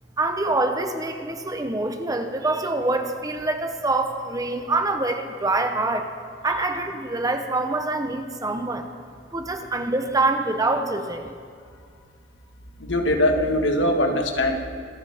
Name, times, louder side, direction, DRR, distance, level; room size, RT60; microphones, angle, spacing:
voice 1, 0.2-6.1 6.4-8.9 9.3-11.3, right 2 dB, 20° right, 6 dB, 0.9 m, -25 dB
voice 2, 12.8-14.6, left 1 dB, 85° left, 3 dB, 1.7 m, -21 dB
25.5 x 13.5 x 3.6 m, 2.2 s
head